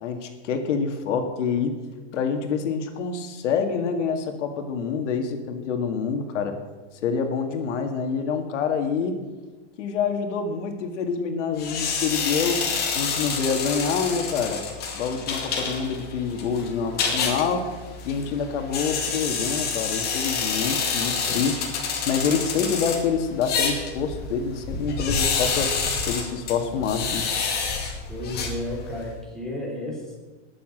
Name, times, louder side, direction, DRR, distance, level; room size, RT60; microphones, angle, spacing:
voice 1, 0.0-1.7 2.1-6.6 7.0-9.2 9.8-12.6 12.9-14.6 14.9-17.7 18.0-21.6 22.1-25.7 26.1-27.3, left 6 dB, 80° left, 5 dB, 2.1 m, -26 dB
sound 1, 11.6-29.1, left 5 dB, 25° left, 2.2 m, -28 dB
voice 2, 28.1-30.2, left 1 dB, ahead, -3 dB, 3.5 m, -33 dB
19.5 x 7.4 x 6.2 m, 1.3 s
supercardioid pair, 160°, 36 cm